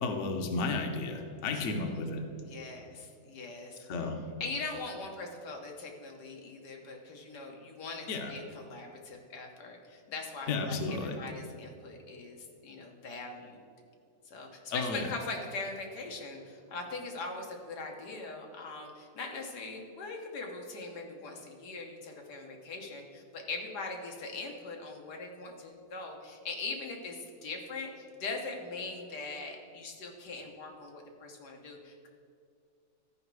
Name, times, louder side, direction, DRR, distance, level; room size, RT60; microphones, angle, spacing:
voice 1, 0.0-2.2 3.9-4.2 8.1-8.3 10.5-11.2 14.7-15.1, left 3 dB, 55° left, 4 dB, 1.0 m, -33 dB
voice 2, 1.5-2.0 2.4-3.8 4.4-13.6 14.3-32.1, left 3 dB, 90° left, 1 dB, 1.7 m, -41 dB
13.5 x 5.1 x 4.7 m, 2.5 s
omnidirectional pair, 1.7 m